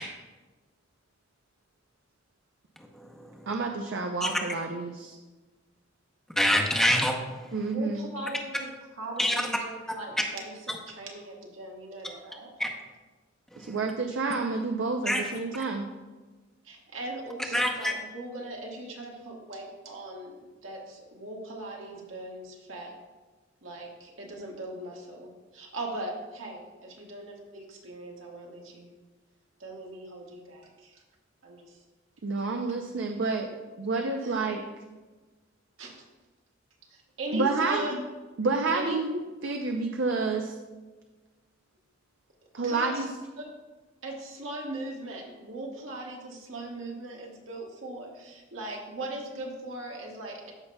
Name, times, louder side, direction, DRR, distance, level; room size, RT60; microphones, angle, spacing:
voice 1, 2.9-3.5 4.2-4.4 6.4-7.5 9.2-9.4 12.6-12.7 13.5-13.7 15.1-15.2 17.5-17.9, left 1 dB, ahead, 1 dB, 0.7 m, -26 dB
voice 2, 3.5-5.2 7.5-8.2 13.6-15.9 32.2-33.5 33.8-34.6 37.3-38.0 38.4-39.1 39.4-40.6 42.5-43.1, right 3 dB, 65° right, 4 dB, 0.5 m, -29 dB
voice 3, 7.7-8.7 9.0-10.5 10.9-12.5 16.6-23.0 23.6-28.9 29.6-31.0 31.4-31.8 34.2-34.4 35.8-36.0 36.9-37.9 38.7-39.0 42.6-43.0 43.4-43.5 44.0-50.5, right 1 dB, 90° right, -1 dB, 1.5 m, -39 dB
13.5 x 5.5 x 2.2 m, 1.3 s
head